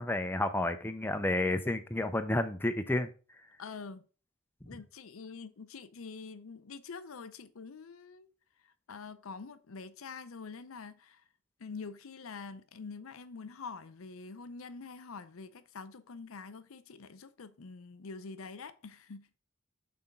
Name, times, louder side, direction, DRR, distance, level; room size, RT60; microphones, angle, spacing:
voice 1, 0.0-3.1, left 1 dB, 10° left, 0.5 m, -31 dB
voice 2, 3.6-4.1 4.7-8.3 8.6-11.2 11.6-19.3, left 4 dB, 85° left, 0.6 m, -46 dB
5.9 x 4.2 x 5.2 m
head